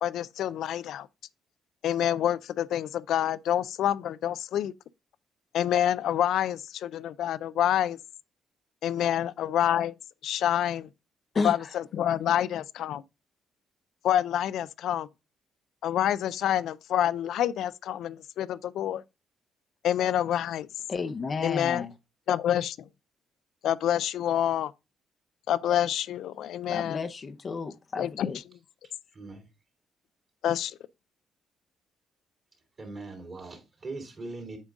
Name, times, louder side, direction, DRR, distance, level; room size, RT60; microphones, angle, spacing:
voice 1, 0.0-1.1 1.8-4.7 5.5-8.0 8.8-9.9 10.2-10.9 11.4-13.0 14.0-15.1 15.8-19.0 19.8-20.7 21.4-21.8 22.3-22.8 23.6-24.7 25.5-27.0 28.0-28.3 30.4-30.8, left 11 dB, 75° left, 0.4 m, -27 dB
voice 2, 11.3-11.7 20.9-21.9 26.7-28.4, left 4 dB, 40° left, 0.6 m, -32 dB
voice 3, 29.1-29.5 32.8-34.6, right 3 dB, 45° right, 3.0 m, -40 dB
8.1 x 5.1 x 2.4 m
cardioid pair, 90°, 0 cm